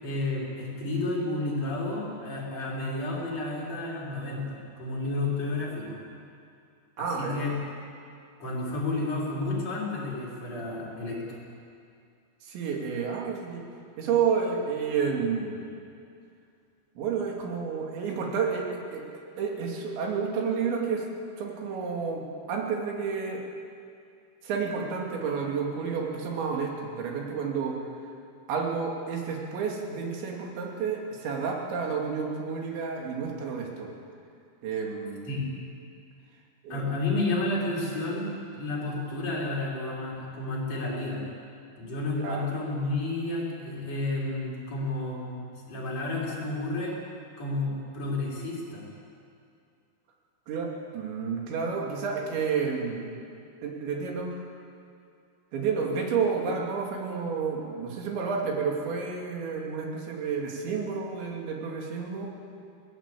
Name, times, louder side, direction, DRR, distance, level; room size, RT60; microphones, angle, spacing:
voice 1, 0.0-6.0 7.0-7.5 8.4-11.4 35.3-35.4 36.7-41.2 41.7-45.3 45.7-47.0 47.4-48.8, left 2 dB, 35° left, -6 dB, 6.4 m, -31 dB
voice 2, 7.0-7.3 12.4-13.6 14.0-15.7 17.0-19.1 19.4-21.0 21.4-23.4 24.4-27.8 28.5-33.9 34.6-35.4 36.6-36.8 42.2-42.5 50.5-53.1 53.6-54.4 55.5-62.3, right 5 dB, 80° right, 0 dB, 4.9 m, -30 dB
21.5 x 18.5 x 8.4 m, 2.4 s
omnidirectional pair, 5.1 m